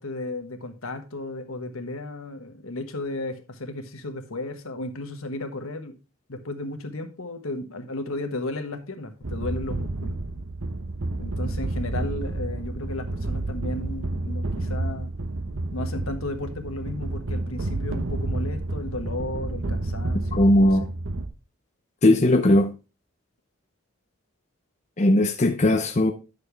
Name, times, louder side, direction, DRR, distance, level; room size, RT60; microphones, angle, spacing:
voice 1, 0.0-5.9 6.3-10.2 11.2-15.1 15.7-20.9, left 2 dB, 75° left, 1.3 m, -34 dB
sound 1, 9.2-21.3, right 2 dB, 65° right, 1.0 m, -30 dB
voice 2, 20.3-20.9 22.0-22.7 25.0-26.1, left 1 dB, 30° left, 0.6 m, -18 dB
10.0 x 6.6 x 3.4 m
head